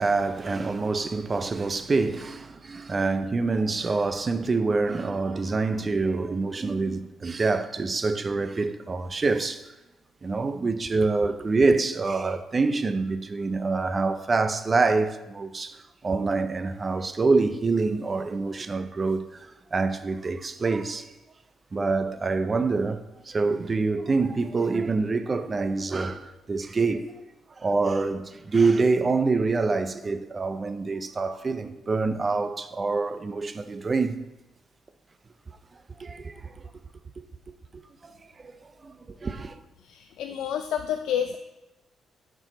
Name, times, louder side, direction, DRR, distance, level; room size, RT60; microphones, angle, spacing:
voice 1, 0.0-9.7 10.2-15.8 16.0-21.1 21.7-27.1 27.6-34.2 36.0-36.7 38.0-38.1 38.4-38.5 38.8-39.6, right 3 dB, 30° right, 0.5 m, -26 dB
voice 2, 39.8-41.4, left 9 dB, 80° left, 0.4 m, -29 dB
10.0 x 4.6 x 3.9 m
cardioid pair, 90°, 0 cm